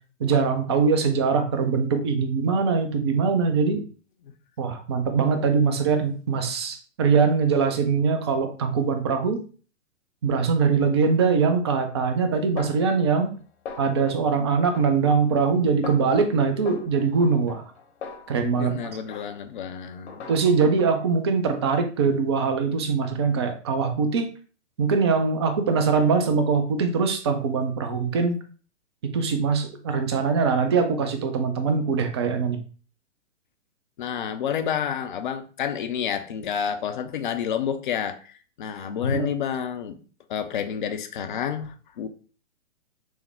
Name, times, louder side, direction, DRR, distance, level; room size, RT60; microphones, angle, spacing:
voice 1, 0.2-3.8 4.6-9.4 10.2-13.3 13.8-17.6 18.3-19.0 20.3-24.3 24.8-28.4 29.1-32.6 39.1-39.3, right 5 dB, 20° right, 6 dB, 0.4 m, -22 dB
Snare drum, 12.6-13.4 13.7-14.2 14.7-15.5 15.8-16.2 16.7-18.8 19.1-19.6 20.1-20.8, left 5 dB, 55° left, 1.1 m, -41 dB
voice 2, 18.6-20.3 34.0-40.0 40.3-42.1, left 8 dB, 40° left, 9 dB, 0.6 m, -29 dB
6.2 x 2.1 x 3.3 m, 0.39 s
figure-of-eight pair, 120°, 38 cm